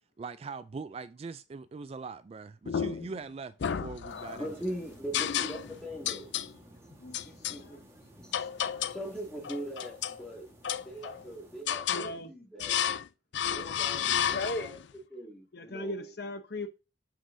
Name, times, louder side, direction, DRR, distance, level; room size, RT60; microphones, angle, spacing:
voice 1, 0.2-4.5, right 4 dB, 35° right, 0.3 m, -41 dB
sound 1, 2.7-3.2 3.6-4.5 5.1-5.8 6.1-6.5 7.1-7.6 8.3-9.1 9.4-10.2 10.6-11.3 11.7-12.1 12.6-13.1 13.3-14.8, left 9 dB, 90° left, 0.4 m, -32 dB
voice 2, 4.1-6.3 7.2-7.9 8.1-8.3 8.9-10.5 10.8-12.8 13.4-16.1, right 1 dB, 5° left, 2.1 m, -41 dB
sound 2, 4.1-11.6, equal, 15° right, 1.5 m, -55 dB
voice 3, 7.0-7.8 8.4-8.9 11.9-12.3 14.2-14.8 15.5-16.7, left 2 dB, 65° left, 0.9 m, -38 dB
7.4 x 5.8 x 2.7 m
head